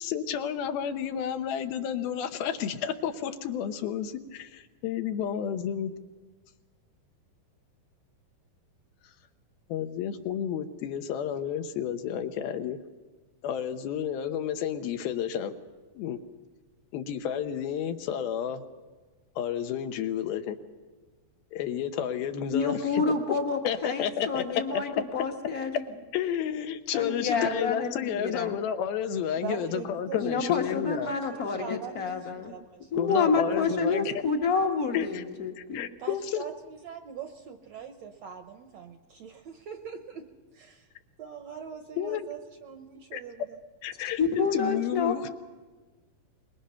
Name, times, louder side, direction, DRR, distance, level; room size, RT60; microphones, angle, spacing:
voice 1, 0.0-5.9 9.7-12.8 13.4-15.5 16.0-16.2 16.9-18.6 19.4-20.6 21.5-23.0 23.6-24.4 24.7-25.2 26.1-31.1 31.7-31.8 33.0-34.2 34.9-35.2 35.6-36.4 42.0-42.3 43.1-43.2 43.8-45.3, left 9 dB, 90° left, 7 dB, 3.1 m, -31 dB
voice 2, 22.5-25.8 26.9-28.6 30.2-32.5 32.9-35.8 44.2-45.1, left 5 dB, 55° left, 3 dB, 1.0 m, -28 dB
voice 3, 29.4-32.9 33.5-33.6 36.0-40.3 40.5-40.8 41.2-43.6, right 7 dB, 70° right, 6 dB, 1.7 m, -42 dB
24.5 x 21.5 x 5.8 m, 1.3 s
omnidirectional pair, 4.2 m